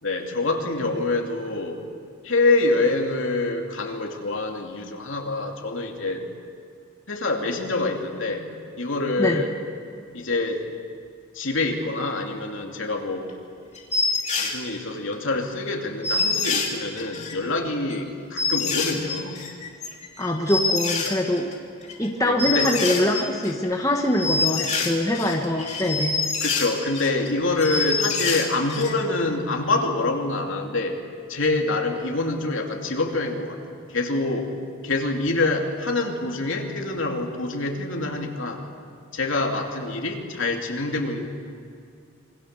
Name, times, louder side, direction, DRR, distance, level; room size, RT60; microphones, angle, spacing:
voice 1, 0.0-1.8 2.2-6.3 7.1-8.5 8.8-9.6 10.1-10.6 11.3-13.3 14.4-19.4 22.2-22.7 26.4-31.0 31.3-34.5 34.8-38.6 39.1-41.3, left 2 dB, 65° left, 2 dB, 2.8 m, -26 dB
sound 1, 13.3-13.4 13.8-14.5 15.1-15.2 15.4-15.5 15.7-15.8 16.0-17.4 17.9-18.0 18.4-21.5 21.8-22.1 22.4-23.7 24.0-27.3 27.5-28.9 29.2-29.3, left 4 dB, 30° left, 2.9 m, -26 dB
voice 2, 20.2-21.5 22.0-26.2, left 1 dB, 15° left, 1 dB, 1.4 m, -23 dB
27.5 x 22.5 x 6.8 m, 2.4 s
head